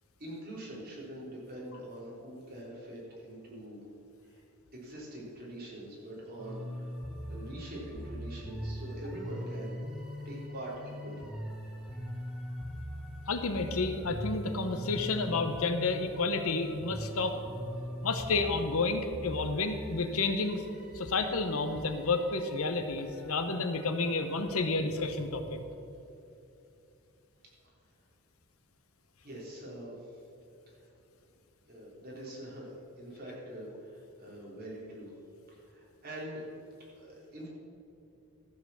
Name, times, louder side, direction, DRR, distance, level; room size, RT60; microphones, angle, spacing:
voice 1, 0.2-3.8 4.2-4.4 4.7-6.9 7.3-9.8 10.3-11.3 29.2-30.2 30.7-30.8 31.2-31.3 31.7-35.1 35.5-36.5 36.9-37.5, right 1 dB, 45° right, -5 dB, 3.5 m, -44 dB
sound 1, 6.4-24.6, equal, 5° right, 1.3 m, -42 dB
voice 2, 13.3-17.4 18.0-20.6 20.9-25.6, left 3 dB, 75° left, 7 dB, 0.9 m, -30 dB
14.0 x 6.8 x 7.0 m, 2.7 s
head